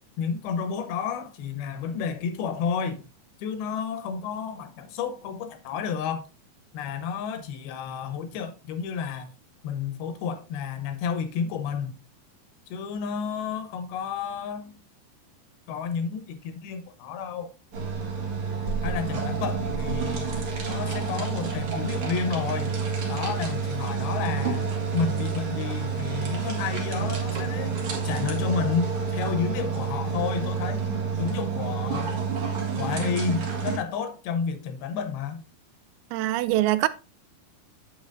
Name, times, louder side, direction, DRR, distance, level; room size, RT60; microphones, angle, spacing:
voice 1, 0.2-3.0 3.4-6.2 6.7-9.3 9.6-12.0 12.7-14.8 15.7-17.5 18.8-20.4 20.7-22.8 23.1-30.9 31.2-32.1 32.8-35.4, left 6 dB, 90° left, 3.0 m, -31 dB
sound 1, 17.7-33.8, right 5 dB, 50° right, 1.9 m, -29 dB
voice 2, 36.1-36.9, right 15 dB, 85° right, 2.3 m, -23 dB
8.6 x 7.3 x 2.6 m
omnidirectional pair, 4.2 m